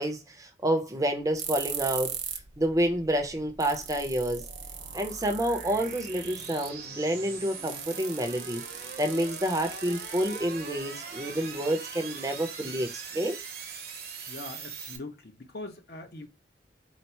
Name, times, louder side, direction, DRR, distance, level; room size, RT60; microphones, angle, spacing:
voice 1, 0.0-2.2 2.6-4.4 4.9-8.6 9.0-13.4, right 1 dB, 20° right, 0.6 m, -29 dB
sound 1, 1.4-15.0, right 5 dB, 55° right, 0.8 m, -42 dB
sound 2, 1.4-2.5 2.8-2.9 3.3-3.4 3.6-6.8 7.7-10.8, right 8 dB, 90° right, 0.7 m, -39 dB
voice 2, 14.3-16.3, left 2 dB, 60° left, 0.8 m, -42 dB
4.1 x 2.0 x 4.4 m
head